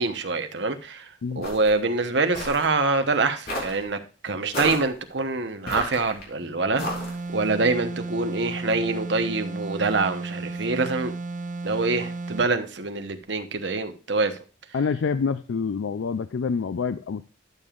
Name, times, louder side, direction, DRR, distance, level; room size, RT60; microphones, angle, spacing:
voice 1, 0.0-6.8 7.3-11.1 11.6-14.4, right 3 dB, 60° right, 1.0 m, -25 dB
sound 1, 1.4-1.8 2.3-2.7 3.5-3.8 4.5-4.9 5.7-6.2 6.8-7.3, left 1 dB, 50° left, 3.4 m, -31 dB
sound 2, 6.8-12.5, right 3 dB, 40° right, 0.7 m, -33 dB
voice 2, 14.7-17.2, left 5 dB, 75° left, 0.4 m, -27 dB
12.0 x 6.9 x 2.5 m
head